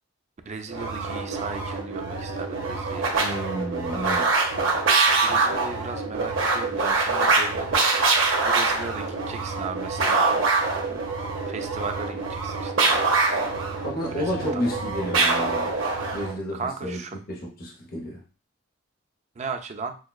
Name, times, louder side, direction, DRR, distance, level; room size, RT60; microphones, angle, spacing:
voice 1, 0.5-3.2 5.2-7.7 8.4-10.3 11.5-13.0 14.1-14.6 16.5-17.2 19.4-20.0, right 4 dB, 35° right, 7 dB, 0.4 m, -36 dB
sound 1, 0.7-16.4, right 3 dB, 75° right, 0.9 m, -24 dB
voice 2, 3.2-4.3 13.8-15.7 16.1-17.0 17.3-18.2, equal, 45° left, -1 dB, 0.9 m, -31 dB
6.2 x 2.2 x 2.3 m, 0.35 s
head